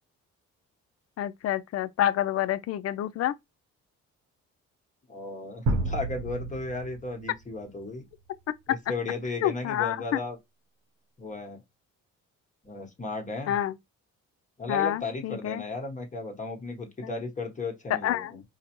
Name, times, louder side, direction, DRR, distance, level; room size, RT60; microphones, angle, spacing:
voice 1, 1.2-3.3 9.4-10.2 13.5-13.8 14.7-15.6 17.0-17.2 17.9-18.4, left 11 dB, 55° left, 0.4 m, -28 dB
voice 2, 5.1-8.0 8.9-10.4 11.2-11.6 12.6-13.5 14.6-18.4, left 3 dB, 25° left, 1.1 m, -35 dB
sound 1, 5.7-7.6, right 2 dB, 85° right, 1.0 m, -31 dB
4.5 x 2.1 x 3.0 m
cardioid pair, 90°, 30 cm